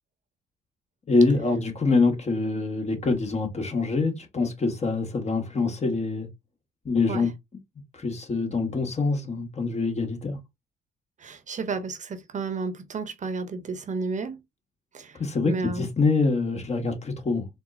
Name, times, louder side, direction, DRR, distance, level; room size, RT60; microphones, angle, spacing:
voice 1, 1.1-6.3 6.8-7.3 8.0-10.4 15.2-17.5, left 3 dB, 35° left, 1.3 m, -25 dB
voice 2, 11.2-14.4 14.9-15.2 15.4-15.9, right 4 dB, 45° right, 0.8 m, -32 dB
4.2 x 2.0 x 2.6 m
supercardioid pair, 65°, 18 cm